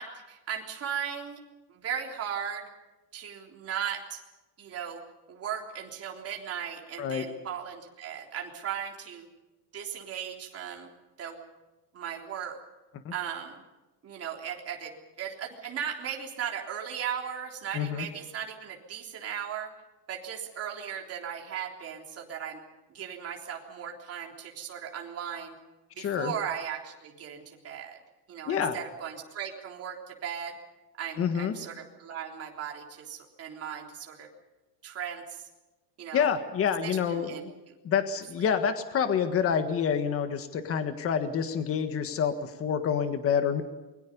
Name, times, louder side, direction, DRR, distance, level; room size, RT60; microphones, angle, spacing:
voice 1, 0.0-1.4 1.7-2.7 3.1-4.2 4.6-5.0 5.3-9.3 9.7-10.9 11.2-11.4 11.9-12.6 13.1-13.6 14.0-19.7 20.1-22.6 22.9-25.6 25.9-28.0 28.3-30.6 31.0-34.3 34.8-35.5 36.0-36.3 36.8-37.7, right 8 dB, 30° right, 1 dB, 3.6 m, -37 dB
voice 2, 17.7-18.1 26.0-26.3 28.5-28.8 31.2-31.5 36.1-37.5 37.8-43.6, left 7 dB, 25° left, 8 dB, 1.6 m, -27 dB
28.5 x 22.5 x 5.4 m, 1.1 s
cardioid pair, 180°, 50 cm